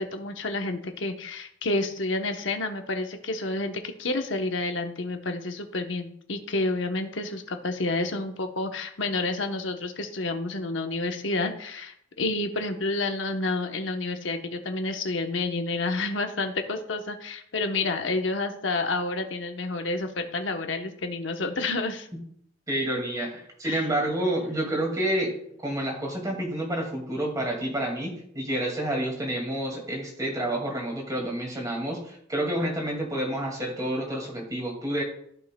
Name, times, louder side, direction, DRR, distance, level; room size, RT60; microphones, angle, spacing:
voice 1, 0.0-22.1 23.6-23.8, left 2 dB, 70° left, 5 dB, 0.9 m, -29 dB
voice 2, 22.7-25.4 25.6-35.0, right 1 dB, 20° right, 0 dB, 2.1 m, -29 dB
14.0 x 5.5 x 2.2 m, 0.68 s
head